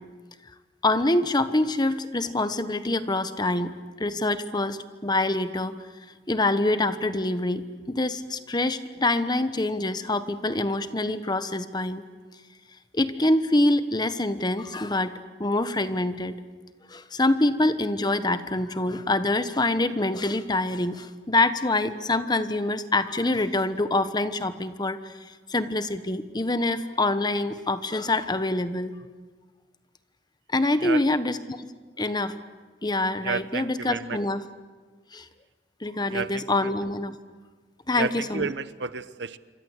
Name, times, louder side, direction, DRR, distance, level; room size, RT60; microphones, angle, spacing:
voice 1, 0.8-3.7 4.0-5.7 6.3-12.0 12.9-15.1 15.4-16.4 16.9-25.1 25.5-28.9 30.5-31.4 32.0-32.3 32.8-34.4 35.1-35.2 35.8-37.1 37.9-38.5, left 2 dB, 25° left, 11 dB, 1.2 m, -25 dB
voice 2, 30.8-31.2 33.2-34.2 36.1-36.7 37.9-39.4, right 4 dB, 75° right, 14 dB, 1.0 m, -32 dB
27.5 x 24.5 x 8.2 m, 1.4 s
head